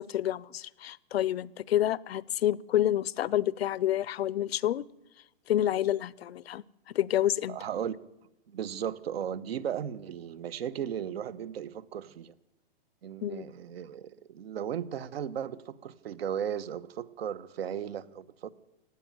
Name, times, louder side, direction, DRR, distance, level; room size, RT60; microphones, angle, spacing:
voice 1, 0.0-4.8 5.5-7.6 13.2-13.4, left 12 dB, 90° left, 0.6 m, -28 dB
voice 2, 7.5-7.9 8.5-12.3 13.0-18.5, right 9 dB, 80° right, 1.0 m, -36 dB
16.5 x 9.6 x 9.0 m
hypercardioid pair, 160°, 30 cm